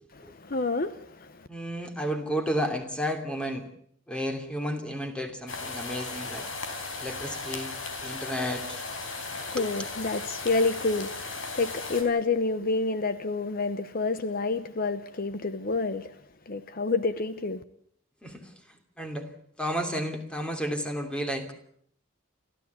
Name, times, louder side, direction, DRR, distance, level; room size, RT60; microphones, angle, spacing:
voice 1, 0.1-1.5 9.1-16.2 16.5-17.6, left 3 dB, 50° left, 0.9 m, -29 dB
voice 2, 1.5-3.6 4.1-6.5 7.0-7.7 8.0-8.8 9.6-9.9 18.2-19.3 19.6-21.5, equal, 5° left, 2.8 m, -32 dB
sound 1, 5.5-12.0, left 3 dB, 80° left, 4.3 m, -36 dB
29.5 x 13.0 x 8.3 m
head